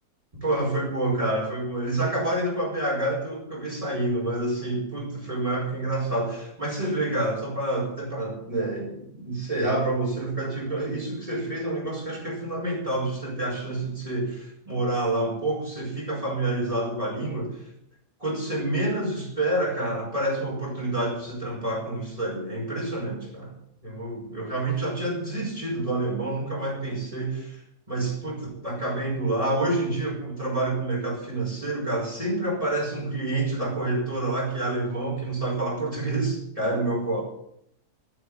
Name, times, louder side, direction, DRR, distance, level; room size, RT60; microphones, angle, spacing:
voice 1, 0.4-17.6 18.2-23.5 23.8-27.6 27.9-37.2, right 2 dB, 20° right, -4 dB, 5.8 m, -28 dB
12.0 x 10.5 x 9.1 m, 0.71 s
omnidirectional pair, 1.7 m